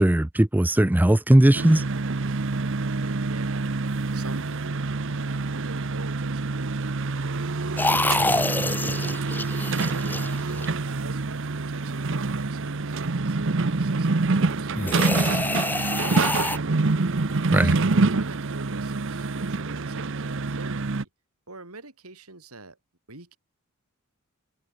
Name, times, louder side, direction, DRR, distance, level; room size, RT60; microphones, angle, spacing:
voice 1, 0.0-1.8 17.5-17.7, right 1 dB, 10° right, 0.4 m, -18 dB
sound 1, 1.5-21.0, right 3 dB, 60° right, 0.9 m, -26 dB
voice 2, 2.5-3.7 4.1-9.4 9.9-14.7 15.0-16.4 17.1-21.1 21.5-22.8 23.1-23.4, right 3 dB, 85° right, 4.9 m, -45 dB
sound 2, 7.8-10.9 14.7-16.6, left 2 dB, 10° left, 1.4 m, -26 dB
head